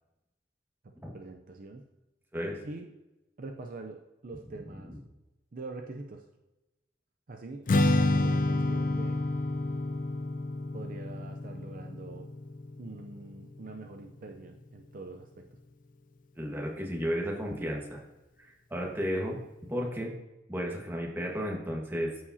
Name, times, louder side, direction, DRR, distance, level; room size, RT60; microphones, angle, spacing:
voice 1, 0.8-1.8 2.6-2.9 3.4-4.9 5.5-6.3 7.3-7.6 8.2-9.2 10.7-12.3 12.8-15.4, right 3 dB, 45° right, 4 dB, 0.5 m, -44 dB
voice 2, 2.3-2.6 8.1-8.3 16.3-18.0 18.4-19.4 19.7-20.1 20.5-22.1, equal, 10° right, -1 dB, 1.5 m, -33 dB
Strum, 7.7-14.0, left 2 dB, 45° left, 0.4 m, -29 dB
14.0 x 4.9 x 2.8 m, 1.0 s
head